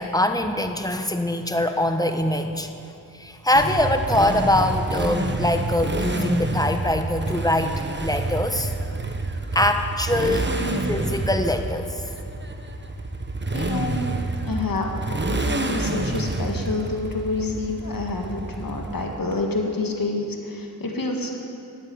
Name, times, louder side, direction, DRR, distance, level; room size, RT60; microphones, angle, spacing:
voice 1, 0.0-2.7 3.1-8.7 9.5-10.5 10.9-12.0, left 1 dB, 10° left, 6 dB, 1.4 m, -23 dB
Motorcycle, 3.5-19.3, right 2 dB, 25° right, 1.3 m, -28 dB
voice 2, 13.5-14.1 14.4-14.9 15.2-21.3, left 3 dB, 60° left, 1 dB, 1.9 m, -28 dB
13.0 x 8.8 x 9.8 m, 2.6 s
cardioid pair, 45°, 39 cm